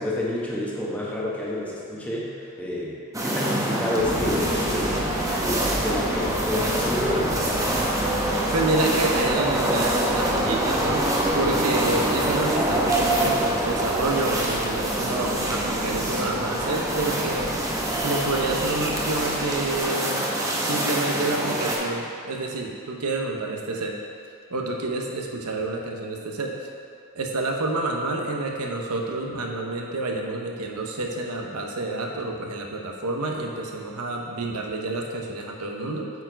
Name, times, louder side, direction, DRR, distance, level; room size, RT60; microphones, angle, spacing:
voice 1, 0.0-7.8, left 1 dB, 5° left, -6 dB, 1.1 m, -29 dB
sound 1, 3.1-21.8, right 1 dB, 15° right, 0.8 m, -25 dB
sound 2, 4.0-19.8, equal, 70° left, 1.6 m, -37 dB
voice 2, 8.5-11.0 11.3-17.5 18.0-20.3 20.6-24.0 24.5-26.6 27.1-36.1, right 2 dB, 85° right, 1 dB, 0.9 m, -28 dB
8.2 x 4.5 x 4.7 m, 2.3 s
head